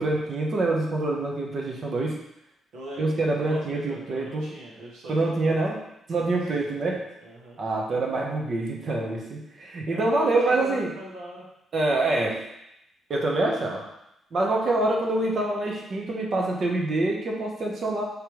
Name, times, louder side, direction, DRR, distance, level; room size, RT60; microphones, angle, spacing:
voice 1, 0.0-2.1 3.0-4.4 5.1-5.8 6.1-7.0 7.6-10.9 11.7-12.4 13.1-13.9 14.3-18.0, right 2 dB, 45° right, 0 dB, 1.0 m, -25 dB
voice 2, 2.7-5.5 6.1-6.4 6.7-7.6 9.9-11.5, right 2 dB, 80° right, -4 dB, 1.2 m, -41 dB
5.1 x 3.3 x 3.1 m, 0.83 s
cardioid pair, 90°, 0 cm